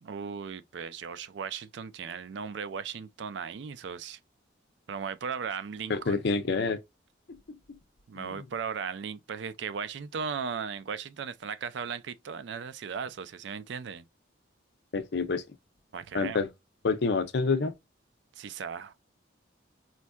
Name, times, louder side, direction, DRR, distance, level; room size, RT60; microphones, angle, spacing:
voice 1, 0.0-4.2 4.9-6.2 8.1-14.0 15.9-16.4 18.4-18.9, right 6 dB, 65° right, 0.4 m, -37 dB
voice 2, 5.9-6.8 8.1-8.3 14.9-15.4 16.1-16.5 16.8-17.7, left 4 dB, 60° left, 0.5 m, -27 dB
4.4 x 2.5 x 2.2 m
head